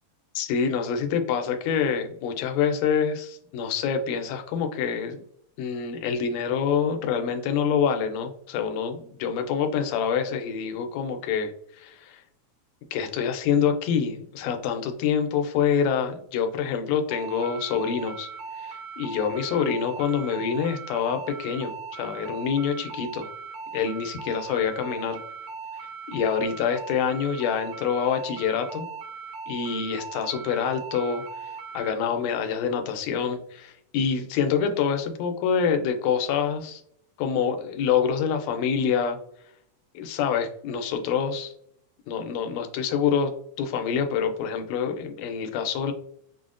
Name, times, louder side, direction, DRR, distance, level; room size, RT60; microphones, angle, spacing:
voice 1, 0.3-5.2 5.6-11.5 11.8-12.2 12.9-18.3 18.6-23.3 23.7-25.2 26.1-28.9 29.5-31.2 31.7-36.8 37.2-39.2 39.9-41.5 42.1-43.3 43.6-45.9, left 7 dB, 80° left, 6 dB, 1.6 m, -26 dB
sound 1, 17.1-31.9, right 5 dB, 85° right, 1.5 m, -39 dB
5.6 x 2.0 x 2.4 m, 0.68 s
omnidirectional pair, 3.5 m